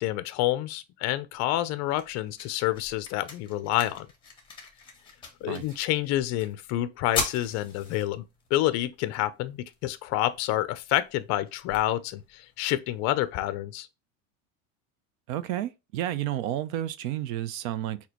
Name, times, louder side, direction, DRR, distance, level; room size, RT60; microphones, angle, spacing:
voice 1, 0.0-4.1 5.4-8.2 8.5-13.9, left 14 dB, 40° left, 0.5 m, -28 dB
sound 1, 1.4-13.4, left 4 dB, 10° left, 1.3 m, -41 dB
voice 2, 15.3-18.0, right 12 dB, 75° right, 0.7 m, -31 dB
6.0 x 2.9 x 2.9 m
cardioid pair, 165°, 40 cm